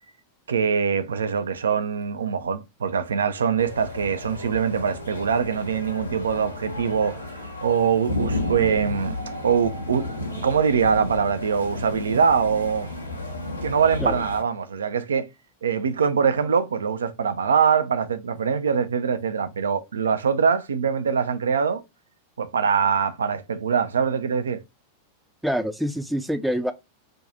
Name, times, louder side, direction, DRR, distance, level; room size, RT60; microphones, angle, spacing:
voice 1, 0.5-10.1 10.4-12.9 13.6-15.3 15.6-21.8 22.4-24.6, right 6 dB, 70° right, 0.3 m, -23 dB
sound 1, 3.6-14.4, left 2 dB, 85° left, 0.7 m, -33 dB
voice 2, 25.4-26.7, equal, ahead, 0.4 m, -25 dB
2.6 x 2.3 x 3.8 m
figure-of-eight pair, 90°, 0 cm